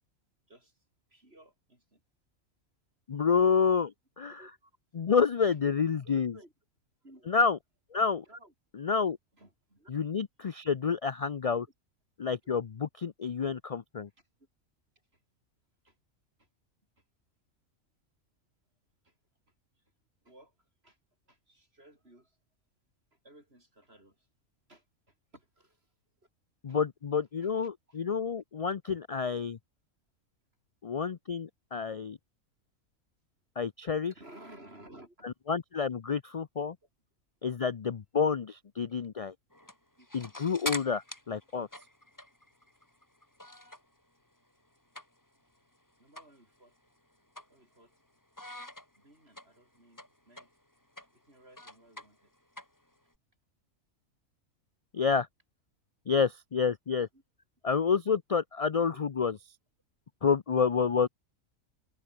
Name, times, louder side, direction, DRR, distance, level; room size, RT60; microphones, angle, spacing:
voice 1, 0.5-0.8 1.1-2.0 4.3-4.7 6.0-6.5 7.0-7.3 8.2-8.5 8.9-9.9 13.4-13.6 15.1-15.2 15.8-16.0 16.4-16.5 17.0-17.1 19.0-19.2 19.8-19.9 20.2-21.0 21.3-22.4 23.1-24.3 24.7-25.9 26.7-26.8 27.4-28.0 34.1-35.3 40.0-40.1 40.6-40.7 46.0-46.7 47.5-48.0 48.9-50.5 51.1-52.3 57.1-57.2 58.9-59.0, right 1 dB, 45° right, 8.2 m, -57 dB
voice 2, 3.1-4.4 4.9-6.3 7.3-7.6 7.9-8.2 8.9-9.1 9.9-11.7 12.2-14.1 26.6-29.6 30.8-32.2 33.6-34.1 35.2-36.8 37.4-39.3 40.1-41.0 41.3-41.7 54.9-55.3 56.1-57.1 57.6-59.4 60.2-61.1, left 6 dB, 55° left, 0.4 m, -29 dB
sound 1, 39.5-44.0 44.3-45.5 45.7-45.8 46.2-46.4 46.7-48.0 48.4-53.2, left 1 dB, 15° left, 3.1 m, -44 dB
omnidirectional pair, 1.4 m